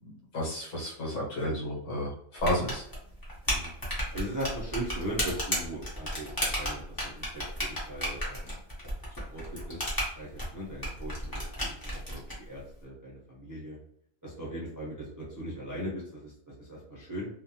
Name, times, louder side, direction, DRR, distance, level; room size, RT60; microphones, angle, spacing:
voice 1, 0.0-2.8, equal, 70° left, -4 dB, 1.3 m, -32 dB
sound 1, 2.4-12.3, equal, 20° left, 0.7 m, -33 dB
voice 2, 4.1-8.5 9.3-9.8 10.1-13.8 14.2-17.3, right 1 dB, 20° right, -7 dB, 0.5 m, -39 dB
2.5 x 2.2 x 2.8 m, 0.67 s
omnidirectional pair, 1.4 m